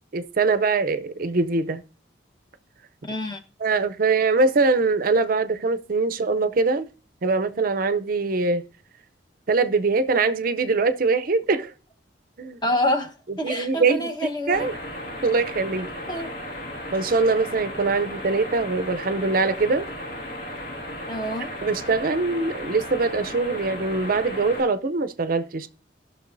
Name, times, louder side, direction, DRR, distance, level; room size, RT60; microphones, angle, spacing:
voice 1, 0.1-1.8 3.6-6.9 7.2-8.6 9.5-11.7 12.4-12.6 13.4-14.1 14.5-14.7 15.2-15.9 16.9-19.9 21.6-25.7, right 3 dB, 50° right, 0.5 m, -22 dB
voice 2, 3.0-3.4 12.6-14.7 16.1-16.3 17.1-17.2 21.1-21.5, left 1 dB, 25° left, 1.1 m, -27 dB
sound 1, 14.5-24.6, left 1 dB, 60° left, 1.9 m, -35 dB
18.0 x 6.1 x 2.6 m
head